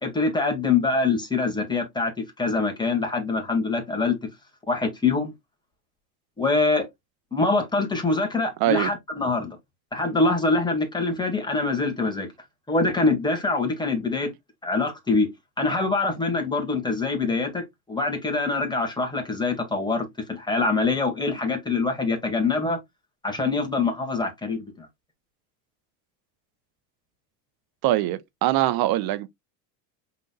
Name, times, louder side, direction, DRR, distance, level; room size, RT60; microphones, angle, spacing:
voice 1, 0.0-2.1 2.4-4.2 4.7-5.3 6.4-6.9 7.3-9.6 9.9-12.3 12.7-14.3 14.6-15.3 15.6-22.8 23.2-24.9, left 3 dB, 10° left, 2.0 m, -24 dB
voice 2, 8.6-8.9 27.8-29.3, right 14 dB, 50° right, 0.8 m, -23 dB
5.4 x 3.9 x 2.3 m
supercardioid pair, 115°, 49 cm